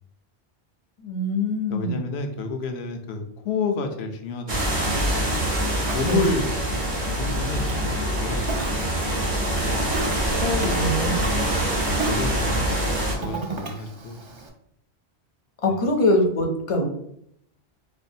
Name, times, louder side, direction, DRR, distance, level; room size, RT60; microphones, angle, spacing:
voice 1, 1.0-2.1 6.0-6.3 10.8-11.1 15.6-16.9, left 1 dB, 40° left, 2 dB, 0.5 m, -23 dB
voice 2, 1.7-5.2 5.9-6.5 7.1-8.8 9.5-9.8 10.4-11.4 12.0-14.2 15.6-15.7, left 4 dB, 75° left, 5 dB, 0.8 m, -30 dB
sound 1, 4.5-13.2, right 1 dB, 65° right, 1.2 m, -25 dB
Ocean, 5.5-14.5, right 4 dB, 45° right, 0.4 m, -37 dB
4.5 x 2.3 x 2.6 m, 0.71 s
omnidirectional pair, 1.1 m